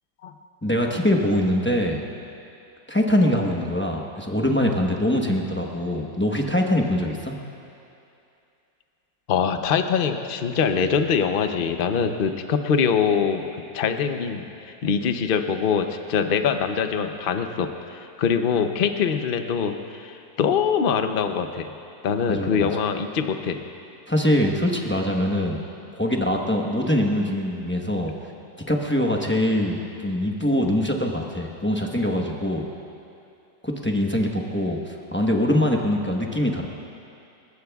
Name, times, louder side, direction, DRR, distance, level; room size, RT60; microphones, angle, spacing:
voice 1, 0.6-2.0 2.9-7.3 22.3-22.7 24.1-25.6 25.9-28.1 28.7-32.7 33.6-36.7, left 1 dB, 10° left, -1 dB, 0.7 m, -23 dB
voice 2, 9.3-13.5 13.7-21.7 22.0-23.6, left 6 dB, 75° left, 7 dB, 0.5 m, -23 dB
28.5 x 15.0 x 2.4 m, 2.6 s
omnidirectional pair, 1.9 m